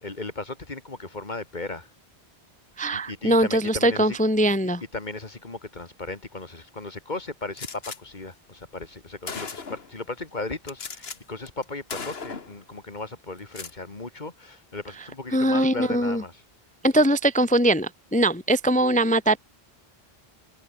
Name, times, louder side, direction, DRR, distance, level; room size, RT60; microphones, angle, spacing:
voice 1, 0.0-1.9 2.9-4.2 4.9-16.4, left 3 dB, 45° left, 2.4 m, -36 dB
voice 2, 2.8-4.8 15.3-16.2 16.8-19.4, right 1 dB, 15° left, 0.3 m, -21 dB
Gunshot gunfire, 7.6-8.0 8.8-8.9 9.3-9.9 10.7-11.2 11.5-11.6 11.9-12.6 13.4-13.8, left 5 dB, 75° left, 1.9 m, -36 dB
omnidirectional pair, 1.0 m